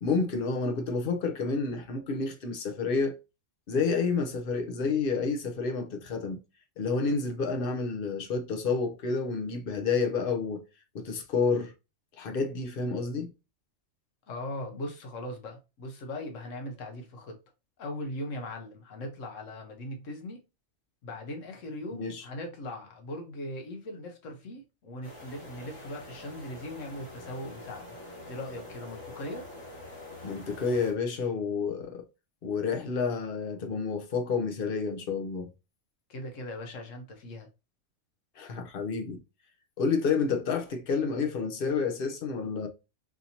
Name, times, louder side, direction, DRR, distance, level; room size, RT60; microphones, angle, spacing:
voice 1, 0.0-3.2 3.7-6.4 6.8-10.6 10.9-11.7 12.2-13.3 21.9-22.2 30.2-32.1 32.4-35.5 38.4-39.2 39.8-42.7, left 4 dB, 50° left, 0.9 m, -29 dB
voice 2, 14.3-17.4 17.8-20.4 21.0-28.0 28.2-29.5 36.1-37.5, left 1 dB, 80° left, 1.1 m, -39 dB
sound 1, 25.0-30.9, left 1 dB, 25° left, 1.3 m, -45 dB
4.9 x 2.8 x 2.8 m
omnidirectional pair, 1.3 m